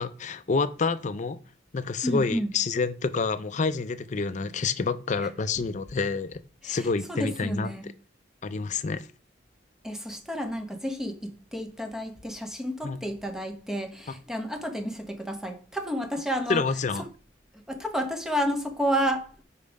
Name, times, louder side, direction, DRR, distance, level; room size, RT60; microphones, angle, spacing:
voice 1, 0.0-1.4 1.7-7.7 8.4-9.1 12.8-13.0 16.5-17.0, left 4 dB, 40° left, 0.5 m, -28 dB
voice 2, 2.0-2.5 5.2-5.3 6.6-7.9 9.8-16.6 17.7-19.4, equal, 5° right, 0.9 m, -31 dB
5.4 x 4.7 x 5.1 m
head